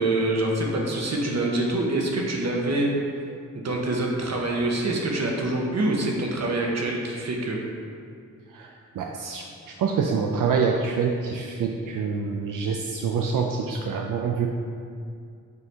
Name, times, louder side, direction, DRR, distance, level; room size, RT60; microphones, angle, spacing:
voice 1, 0.0-2.9 3.5-7.6, right 2 dB, 55° right, 0 dB, 1.0 m, -25 dB
voice 2, 9.0-14.5, right 5 dB, 85° right, 1 dB, 0.5 m, -26 dB
6.8 x 4.5 x 3.4 m, 2.3 s
wide cardioid pair, 85°, 31 cm